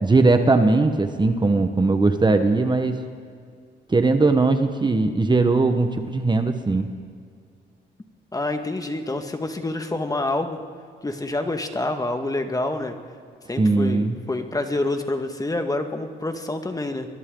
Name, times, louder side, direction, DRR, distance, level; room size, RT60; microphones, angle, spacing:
voice 1, 0.0-3.0 3.9-6.9 13.6-14.1, right 3 dB, 20° right, 7 dB, 1.3 m, -19 dB
voice 2, 8.3-10.6 11.0-12.9 13.5-17.1, left 2 dB, 20° left, 6 dB, 1.8 m, -27 dB
29.5 x 22.0 x 4.0 m, 2.2 s
cardioid pair, 90°, 20 cm